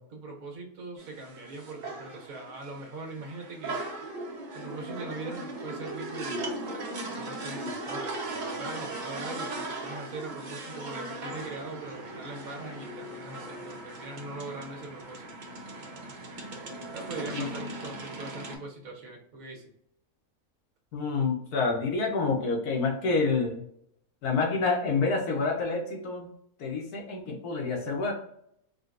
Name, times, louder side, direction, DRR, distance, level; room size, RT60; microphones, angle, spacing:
voice 1, 0.1-3.8 4.5-6.6 7.1-15.4 16.9-19.6, right 3 dB, 70° right, 1 dB, 1.3 m, -41 dB
sound 1, 1.0-18.6, right 2 dB, 50° right, 0.5 m, -38 dB
voice 2, 20.9-23.6 24.2-26.3 26.6-28.1, left 4 dB, 85° left, 1 dB, 1.3 m, -28 dB
3.7 x 2.3 x 2.4 m, 0.71 s
omnidirectional pair, 1.6 m